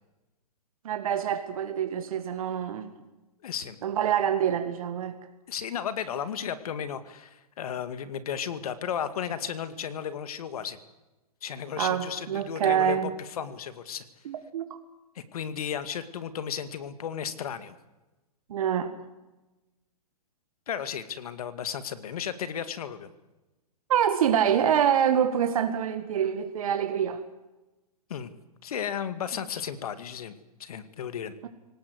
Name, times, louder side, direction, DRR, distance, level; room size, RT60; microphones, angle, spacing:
voice 1, 0.8-2.9 3.8-5.2 11.8-13.1 14.3-14.7 18.5-18.9 23.9-27.2, right 9 dB, 60° right, 8 dB, 2.1 m, -26 dB
voice 2, 3.4-3.8 5.5-10.8 11.4-13.0 13.4-14.0 15.2-17.8 20.7-23.1 28.1-28.3 28.6-30.3 30.6-31.3, left 8 dB, 65° left, 12 dB, 2.2 m, -34 dB
26.5 x 18.5 x 8.2 m, 1.1 s
hypercardioid pair, 145°, 20 cm